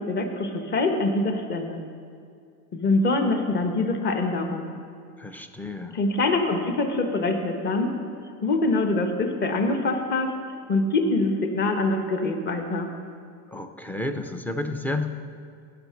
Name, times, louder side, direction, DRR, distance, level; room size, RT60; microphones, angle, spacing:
voice 1, 0.0-1.8 2.7-4.7 5.9-7.9 8.4-10.3 10.7-12.9, left 2 dB, 30° left, 4 dB, 1.3 m, -24 dB
voice 2, 5.2-6.0 13.5-15.1, left 2 dB, 5° left, 7 dB, 0.4 m, -31 dB
16.0 x 6.0 x 5.8 m, 2.3 s
supercardioid pair, 135°, 37 cm